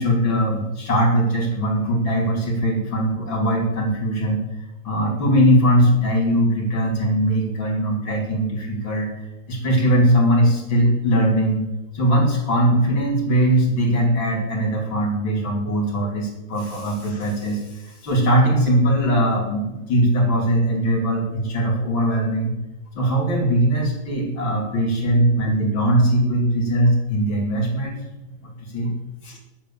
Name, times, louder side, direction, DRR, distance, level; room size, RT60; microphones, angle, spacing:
voice 1, 0.0-4.4 4.8-9.1 9.5-11.7 11.9-22.5 23.0-28.0 28.7-28.9 29.2-29.4, equal, 70° left, -1 dB, 4.1 m, -20 dB
10.5 x 8.8 x 7.1 m, 1.0 s
omnidirectional pair, 2.2 m